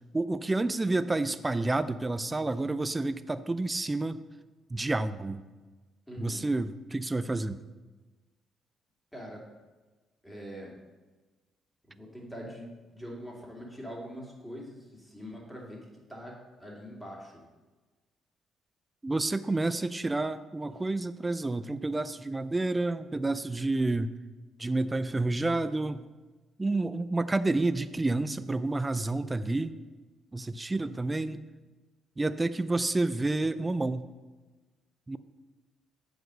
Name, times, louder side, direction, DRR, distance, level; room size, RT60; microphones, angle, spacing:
voice 1, 0.1-4.2 4.7-5.4 6.2-7.6 19.0-24.1 24.6-26.1 26.6-29.8 30.3-31.4 32.2-34.1 35.1-35.2, right 2 dB, 20° right, 13 dB, 0.4 m, -29 dB
voice 2, 6.1-6.4 9.1-9.4 10.2-10.7 11.9-17.4 20.7-20.8, equal, 5° left, -3 dB, 2.7 m, -43 dB
7.8 x 5.0 x 6.5 m, 1.2 s
cardioid pair, 90°, 0 cm